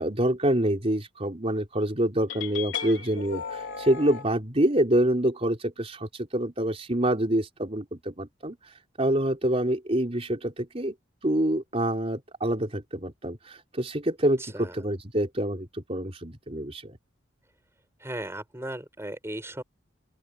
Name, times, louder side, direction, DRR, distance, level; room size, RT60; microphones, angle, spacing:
voice 1, 0.0-8.6 9.0-10.9 11.2-17.0, right 1 dB, 30° right, 4.0 m, -26 dB
sound 1, 2.3-4.3, left 7 dB, 85° left, 4.1 m, -35 dB
voice 2, 14.4-14.9 18.0-19.6, right 1 dB, 15° right, 7.1 m, -37 dB
open air
head